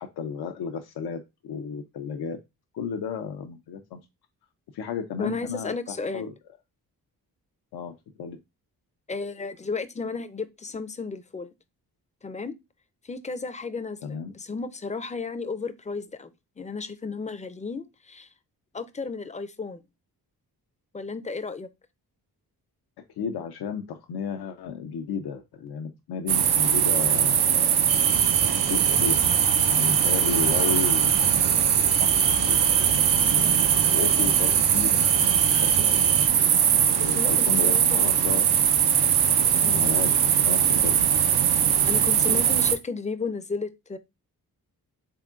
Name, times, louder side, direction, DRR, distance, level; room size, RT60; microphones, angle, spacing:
voice 1, 0.0-2.4 2.7-4.0 4.7-6.3 7.7-8.4 14.0-14.3 23.2-28.1 28.5-29.3 29.7-31.5 32.0-33.5 33.9-36.0 37.0-38.5 39.6-41.0, left 6 dB, 90° left, 0.5 m, -33 dB
voice 2, 5.2-6.3 9.1-11.5 12.2-12.5 13.0-16.3 16.6-18.3 18.7-19.8 20.9-21.7 37.0-38.2 39.6-39.9 41.9-44.0, left 4 dB, 20° left, 0.4 m, -33 dB
sound 1, 26.3-42.8, right 8 dB, 85° right, 0.6 m, -21 dB
sound 2, 27.9-36.3, right 5 dB, 60° right, 0.8 m, -33 dB
3.7 x 3.6 x 2.3 m
cardioid pair, 75°, 38 cm